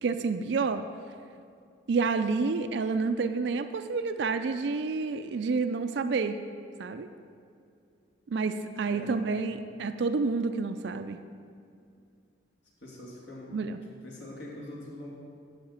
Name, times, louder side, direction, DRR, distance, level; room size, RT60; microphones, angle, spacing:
voice 1, 0.0-0.9 1.9-6.4 6.8-7.1 8.3-11.2 13.5-13.8, right 4 dB, 60° right, 9 dB, 0.4 m, -29 dB
voice 2, 12.8-13.5 14.0-15.1, left 1 dB, 70° left, -4 dB, 2.2 m, -43 dB
10.0 x 5.6 x 7.2 m, 2.4 s
head